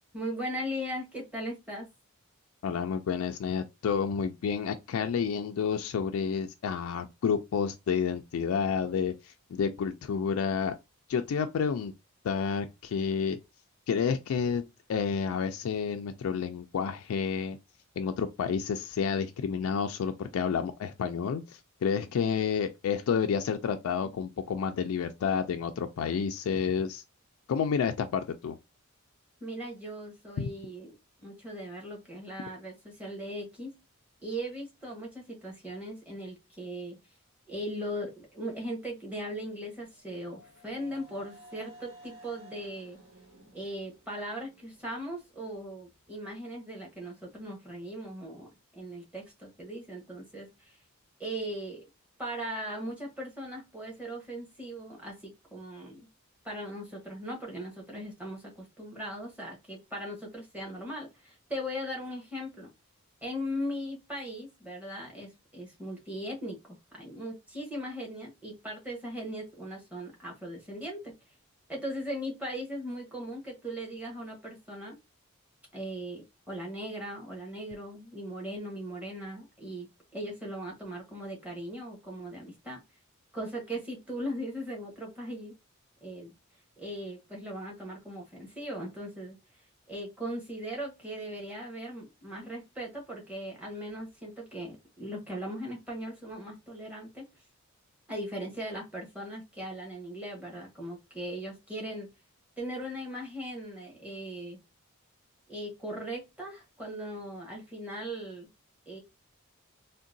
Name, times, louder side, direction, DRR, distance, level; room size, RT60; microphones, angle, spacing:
voice 1, 0.1-1.9 24.0-24.1 29.4-30.9 31.2-33.7 34.2-37.0 37.5-43.0 43.5-50.8 51.2-51.8 52.2-56.1 56.4-62.7 63.2-66.6 66.9-71.1 71.7-75.0 75.7-79.9 80.1-82.8 83.3-85.5 86.0-86.3 86.8-89.4 89.9-97.3 98.1-102.1 102.6-104.6 105.5-108.5 108.9-109.0, equal, 5° right, 1.0 m, -39 dB
voice 2, 2.6-10.8 11.1-11.9 12.2-13.4 13.9-14.6 14.9-17.6 18.0-27.0 27.5-28.6 30.4-30.5, left 6 dB, 70° left, 0.3 m, -30 dB
sound 1, 39.5-45.2, equal, 65° right, 1.4 m, -55 dB
3.7 x 2.2 x 2.5 m
head